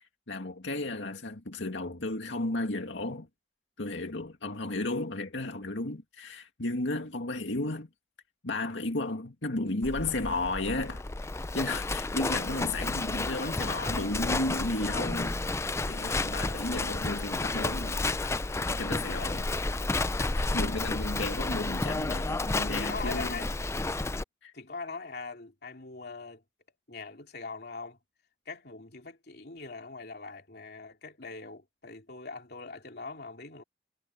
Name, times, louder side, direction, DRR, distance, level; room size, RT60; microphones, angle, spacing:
voice 1, 0.0-3.3 3.8-7.9 8.4-11.0 11.5-15.4 15.8-19.5 20.0-23.4 24.4-24.5, left 2 dB, 85° left, 2.2 m, -34 dB
Livestock farm animals working animals, 9.8-24.2, left 2 dB, 15° left, 0.4 m, -31 dB
voice 2, 22.7-23.5 24.5-26.4 26.9-28.0 28.5-33.6, left 4 dB, 60° left, 3.1 m, -41 dB
head